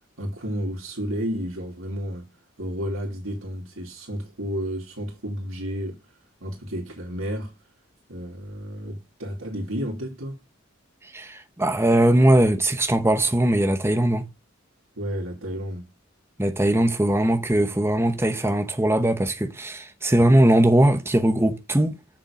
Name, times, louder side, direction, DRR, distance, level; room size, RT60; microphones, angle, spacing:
voice 1, 0.2-2.3 2.6-6.0 6.4-7.5 8.1-10.4 15.0-15.9, equal, 85° right, 3.0 m, -31 dB
voice 2, 11.1-14.2 16.4-22.0, right 1 dB, 10° right, 1.0 m, -20 dB
7.3 x 6.9 x 5.1 m
head